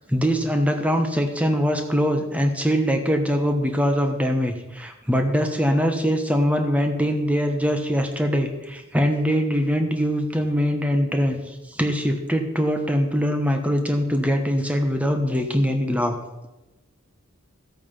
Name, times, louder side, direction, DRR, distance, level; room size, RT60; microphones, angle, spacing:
voice 1, 0.1-16.1, equal, 5° right, 5 dB, 1.1 m, -22 dB
14.0 x 8.4 x 5.5 m, 1.0 s
head